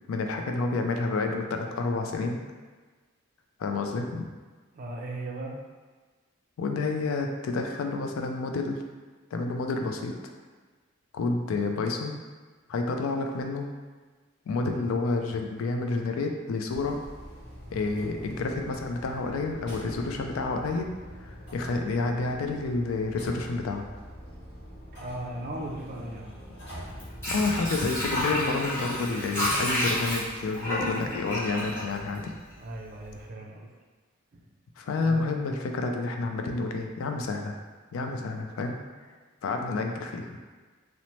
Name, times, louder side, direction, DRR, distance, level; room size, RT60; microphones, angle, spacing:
voice 1, 0.1-2.4 3.6-4.2 6.6-8.8 9.3-10.1 11.1-12.2 12.7-13.7 14.5-17.0 17.7-20.9 21.2-23.9 27.3-32.3 34.8-37.6 37.9-38.8 39.4-40.4, left 3 dB, 75° left, 3 dB, 0.3 m, -29 dB
voice 2, 4.7-5.6 24.9-26.3 32.6-33.7 34.3-34.4 35.0-35.2, right 1 dB, 40° right, 0 dB, 0.4 m, -37 dB
sound 1, 16.7-28.3, equal, 55° left, 0.8 m, -44 dB
Water / Sink (filling or washing), 26.8-32.7 33.1-33.2, left 1 dB, 15° left, 0.9 m, -30 dB
2.8 x 2.0 x 3.0 m, 1.4 s
head